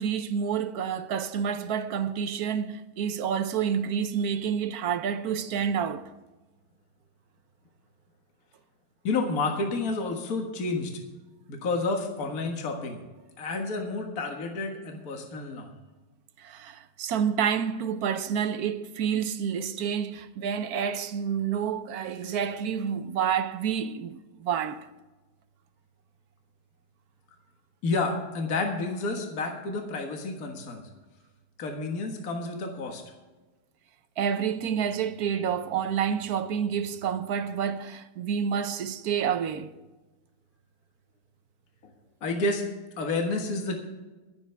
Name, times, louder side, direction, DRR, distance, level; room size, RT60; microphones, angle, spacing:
voice 1, 0.0-6.1 16.4-24.9 34.2-39.7, right 7 dB, 65° right, 1.1 m, -29 dB
voice 2, 9.0-10.9 11.5-13.0 13.4-15.7 27.8-30.8 31.6-33.0 42.2-42.6 43.0-43.8, left 3 dB, 50° left, 2.0 m, -30 dB
24.5 x 8.4 x 3.4 m
omnidirectional pair, 2.1 m